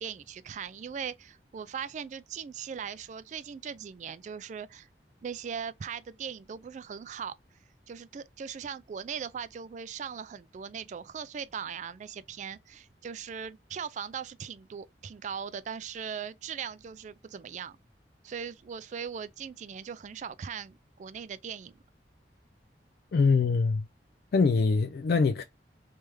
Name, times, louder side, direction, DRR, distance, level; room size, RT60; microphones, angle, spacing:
voice 1, 0.0-4.9 5.2-7.4 7.9-17.8 18.2-21.8, right 7 dB, 40° right, 0.3 m, -39 dB
voice 2, 23.1-23.9 24.3-25.4, left 4 dB, 60° left, 0.3 m, -23 dB
3.4 x 3.2 x 3.2 m
head